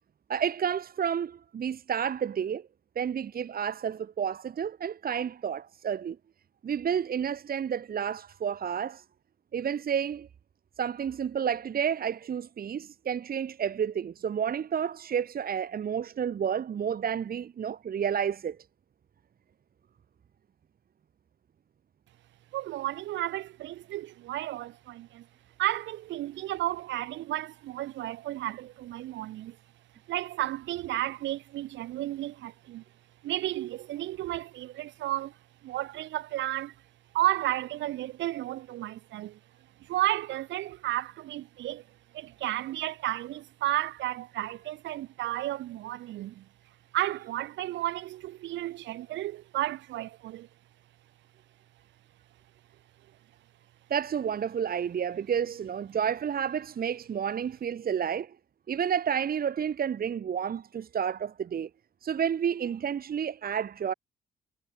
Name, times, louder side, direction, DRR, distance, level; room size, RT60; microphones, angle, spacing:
voice 1, 0.3-2.6 2.9-6.2 6.6-9.0 9.5-10.3 10.8-18.6 53.9-58.3 58.7-61.7 62.0-63.9, right 8 dB, 50° right, 1.6 m, -30 dB
voice 2, 22.5-25.3 25.6-29.6 30.1-32.8 33.2-36.7 37.1-39.4 39.8-41.8 42.1-46.5 46.9-50.5, right 15 dB, 75° right, 3.3 m, -33 dB
hypercardioid pair, 50°, 19 cm